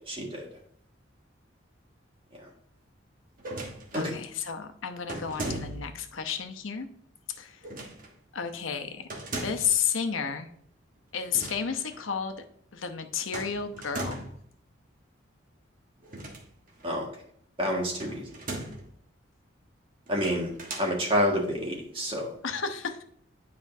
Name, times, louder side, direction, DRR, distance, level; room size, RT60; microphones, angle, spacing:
voice 1, 0.1-0.5 2.3-2.4 3.9-4.1 16.8-17.1 17.6-18.3 20.1-20.5 20.8-22.3, equal, 25° right, -1 dB, 1.7 m, -28 dB
sound 1, 3.4-4.1 5.1-6.0 7.6-8.1 9.1-9.8 11.2-11.6 11.9-12.0 13.3-14.4 16.0-16.9 18.0-18.9 20.1-20.9, right 2 dB, 45° right, 1.2 m, -38 dB
voice 2, 3.9-6.9 7.3-7.7 8.3-10.5 11.1-12.3 12.7-14.3 22.4-23.0, left 7 dB, 85° left, 7 dB, 0.8 m, -32 dB
9.5 x 5.1 x 2.7 m, 0.66 s
head